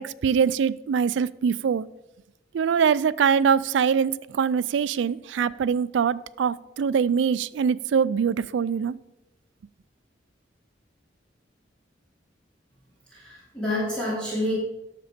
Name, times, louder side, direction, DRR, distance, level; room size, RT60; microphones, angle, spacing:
voice 1, 0.0-1.9 2.5-9.0, right 7 dB, 80° right, 0.3 m, -23 dB
voice 2, 13.1-14.5, left 1 dB, 5° left, 2.7 m, -28 dB
9.7 x 6.8 x 5.1 m
head